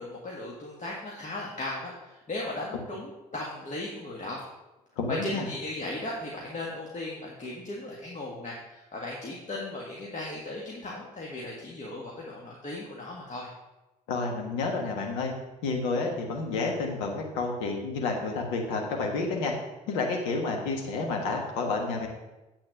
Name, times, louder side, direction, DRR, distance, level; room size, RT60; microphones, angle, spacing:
voice 1, 0.0-4.4 5.1-13.5, left 2 dB, 40° left, -3 dB, 1.7 m, -37 dB
voice 2, 5.0-5.4 14.1-15.3 15.6-19.5 19.9-22.1, left 3 dB, 75° left, 1 dB, 1.5 m, -30 dB
8.7 x 4.3 x 6.5 m, 1.0 s
hypercardioid pair, 45°, 20 cm